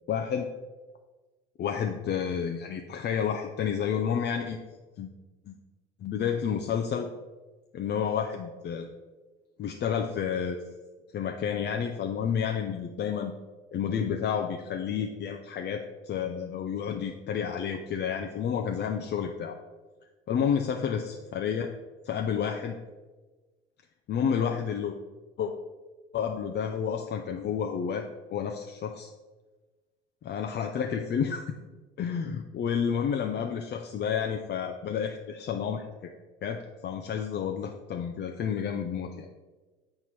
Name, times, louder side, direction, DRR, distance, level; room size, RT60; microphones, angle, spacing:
voice 1, 0.1-0.5 1.6-4.6 5.0-5.1 5.5-5.6 6.0-7.1 7.7-8.9 9.6-10.6 11.1-13.3 13.7-19.6 20.3-21.7 22.0-22.8 24.1-24.9 25.4-25.5 26.1-29.1 30.2-31.4 32.0-36.1 36.4-39.3, left 7 dB, 35° left, 3 dB, 0.6 m, -30 dB
7.6 x 4.4 x 4.2 m, 1.3 s
figure-of-eight pair, 65°, 31 cm